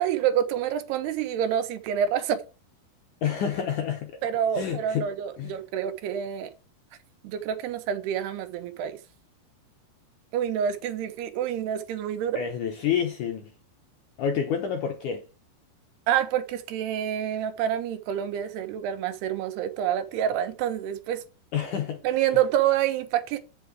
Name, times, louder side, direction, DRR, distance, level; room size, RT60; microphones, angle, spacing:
voice 1, 0.0-2.4 4.2-6.5 7.2-9.0 10.3-12.4 16.1-21.2 22.0-23.4, right 10 dB, 75° right, 2.8 m, -27 dB
voice 2, 3.2-4.2 4.5-5.1 5.4-5.6 12.3-13.5 14.2-15.3 21.5-22.0 22.3-22.4, left 8 dB, 75° left, 1.9 m, -28 dB
8.9 x 5.7 x 5.9 m
omnidirectional pair, 4.8 m